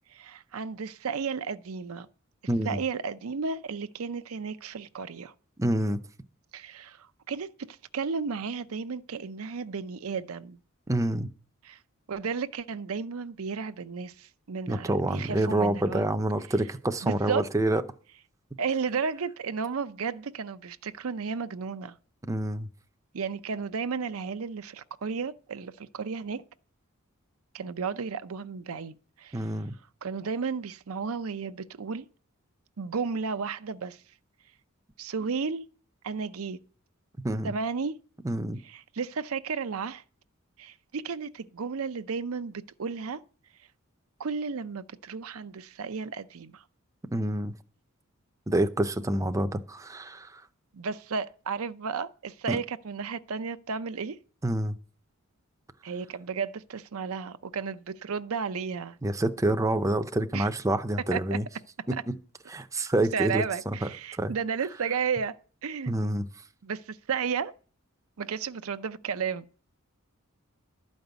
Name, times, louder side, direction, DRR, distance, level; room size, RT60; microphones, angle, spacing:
voice 1, 0.1-2.1 2.7-5.3 6.5-10.6 11.6-11.8 12.1-16.0 17.0-17.4 18.6-22.0 23.1-26.4 27.5-29.4 30.0-32.0 32.8-34.0 35.0-35.6 36.0-36.6 37.4-37.9 38.7-40.0 40.6-43.2 44.2-46.6 50.7-54.2 55.8-59.0 60.3-60.5 61.1-61.4 63.1-65.3 65.6-66.1 66.6-67.5 68.2-69.5, right 5 dB, 75° right, 0.6 m, -33 dB
voice 2, 2.5-2.8 5.6-6.0 10.9-11.3 14.7-17.8 22.3-22.7 29.3-29.7 37.2-37.5 38.2-38.6 47.1-47.5 48.5-50.4 52.5-52.6 54.4-54.7 59.0-61.5 61.9-62.0 62.5-63.8 64.2-64.3 65.9-66.2, right 1 dB, 15° right, 0.6 m, -27 dB
12.0 x 5.3 x 8.0 m
head